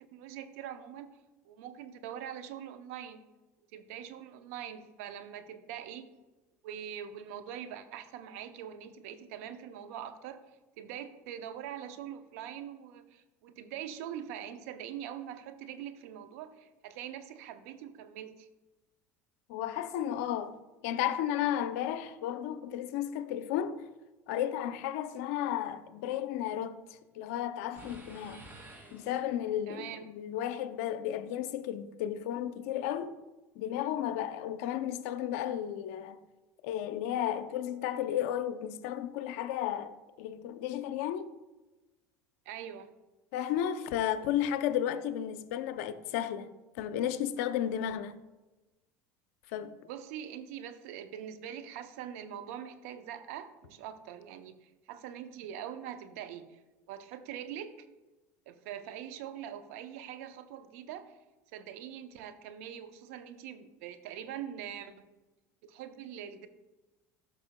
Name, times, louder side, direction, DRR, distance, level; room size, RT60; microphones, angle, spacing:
voice 1, 0.1-1.1 1.4-3.2 3.7-6.1 6.6-10.4 10.8-18.5 29.7-30.1 42.5-42.9 49.9-56.6 56.9-57.9 58.5-61.1 61.5-65.1 65.6-66.5, right 9 dB, 75° right, 0.6 m, -43 dB
voice 2, 19.5-20.6 20.8-23.9 24.3-28.4 28.9-33.2 33.6-36.2 36.6-41.3 43.3-46.5 46.8-48.2 49.5-49.7, left 10 dB, 75° left, 0.5 m, -33 dB
sound 1, 27.8-29.6, right 1 dB, 25° right, 2.3 m, -51 dB
12.0 x 6.0 x 2.2 m
supercardioid pair, 90°, 8 cm